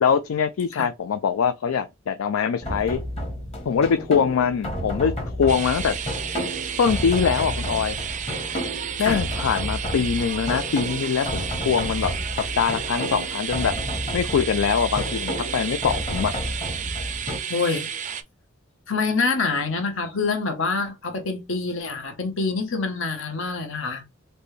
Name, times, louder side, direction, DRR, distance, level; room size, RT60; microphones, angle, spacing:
voice 1, 0.0-3.0 3.7-6.0 6.8-8.0 9.0-13.8 14.1-16.3, left 7 dB, 85° left, 0.4 m, -23 dB
sound 1, 2.6-17.4, equal, 30° left, 1.3 m, -31 dB
sound 2, 5.5-18.2, right 8 dB, 35° right, 0.4 m, -32 dB
voice 2, 17.5-17.9 18.9-24.0, left 4 dB, 70° left, 1.0 m, -26 dB
4.2 x 2.2 x 3.2 m
head